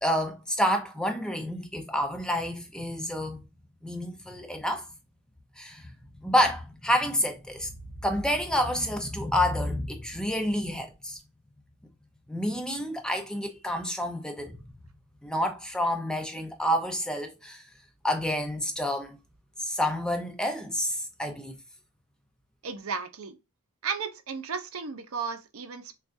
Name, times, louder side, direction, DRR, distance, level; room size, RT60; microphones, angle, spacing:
voice 1, 0.0-3.4 3.8-4.9 5.6-5.9 6.2-7.7 8.0-11.2 12.3-14.6 15.2-17.6 18.0-19.2 19.6-21.5, equal, 5° left, 0.6 m, -29 dB
voice 2, 22.6-23.4 23.8-25.9, right 5 dB, 70° right, 0.7 m, -34 dB
6.5 x 2.4 x 2.6 m
head